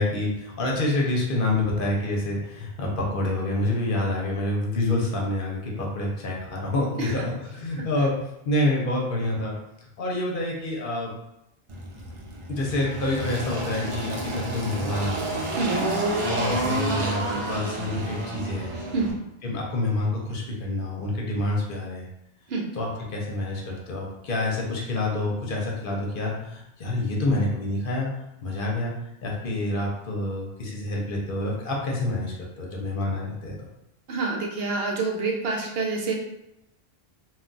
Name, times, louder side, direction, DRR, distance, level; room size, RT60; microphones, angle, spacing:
voice 1, 0.0-8.1 8.4-9.5 10.0-11.1 12.5-15.5 16.2-18.7 19.4-22.1 22.7-28.1 28.4-28.9 29.2-33.5, left 2 dB, 60° left, -2 dB, 0.8 m, -27 dB
Engine, 11.7-19.1, right 1 dB, 45° right, 0.4 m, -29 dB
voice 2, 34.1-36.1, right 3 dB, 75° right, -1 dB, 0.8 m, -27 dB
2.3 x 2.2 x 3.8 m, 0.86 s
omnidirectional pair, 1.0 m